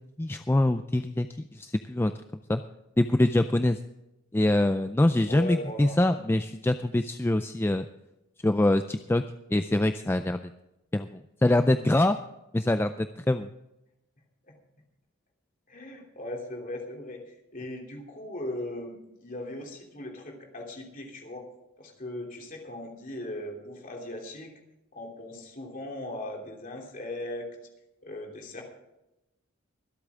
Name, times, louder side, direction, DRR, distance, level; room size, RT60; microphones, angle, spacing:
voice 1, 0.2-1.3 1.5-2.1 2.5-2.6 3.0-3.8 4.3-7.8 8.4-9.2 9.5-10.4 10.9-12.2 12.5-13.5, left 1 dB, 10° left, 9 dB, 0.3 m, -24 dB
voice 2, 5.3-6.0 14.5-14.6 15.7-21.5 21.8-24.5 24.9-27.6 28.0-28.6, left 1 dB, 40° left, 1 dB, 3.1 m, -38 dB
24.5 x 8.4 x 3.6 m, 0.93 s
head